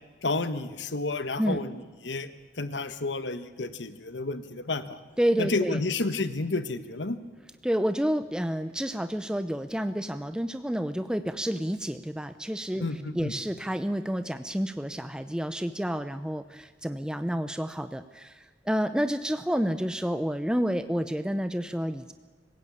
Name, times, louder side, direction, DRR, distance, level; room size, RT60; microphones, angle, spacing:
voice 1, 0.2-1.7 2.0-2.3 2.6-5.0 5.4-7.2 12.8-13.3, left 3 dB, 80° left, 11 dB, 1.3 m, -30 dB
voice 2, 5.2-5.8 7.6-12.8 13.1-22.1, equal, 5° right, 10 dB, 0.7 m, -29 dB
26.0 x 16.5 x 8.6 m, 1.4 s
head